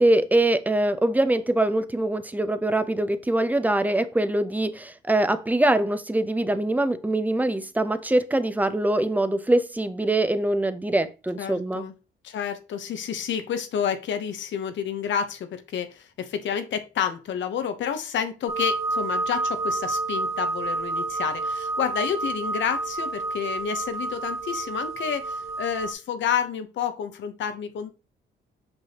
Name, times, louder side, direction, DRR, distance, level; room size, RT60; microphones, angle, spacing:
voice 1, 0.0-11.8, right 1 dB, 10° right, 11 dB, 0.7 m, -23 dB
voice 2, 11.4-11.9 12.2-27.9, left 8 dB, 70° left, 9 dB, 1.0 m, -29 dB
sound 1, 18.5-25.9, right 2 dB, 30° right, 2.2 m, -29 dB
6.2 x 5.4 x 2.9 m, 0.30 s
cardioid pair, 90°, 20 cm